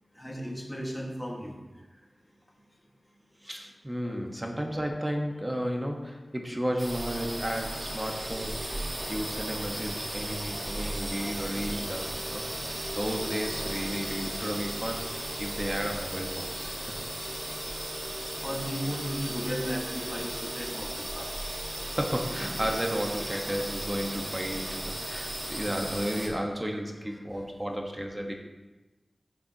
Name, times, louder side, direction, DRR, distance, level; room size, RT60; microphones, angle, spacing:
voice 1, 0.2-1.6 4.1-4.2 18.4-21.6, equal, 10° left, -1 dB, 1.7 m, -35 dB
voice 2, 3.4-17.0 21.8-28.3, equal, 15° right, 2 dB, 1.3 m, -33 dB
sound 1, 6.8-26.3, right 1 dB, 45° right, 2.2 m, -35 dB
15.0 x 7.1 x 2.9 m, 1.1 s
wide cardioid pair, 90°, 0 cm